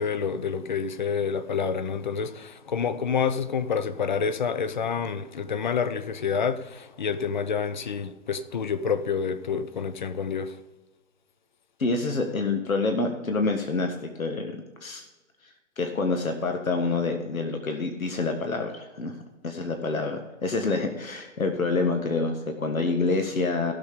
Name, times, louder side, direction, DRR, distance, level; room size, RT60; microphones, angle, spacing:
voice 1, 0.0-10.6, left 6 dB, 35° left, 0.6 m, -28 dB
voice 2, 11.8-14.5 14.8-15.0 15.8-19.1 19.4-23.7, left 3 dB, 90° left, 1.7 m, -27 dB
15.5 x 6.6 x 5.2 m
hypercardioid pair, 155°, 40 cm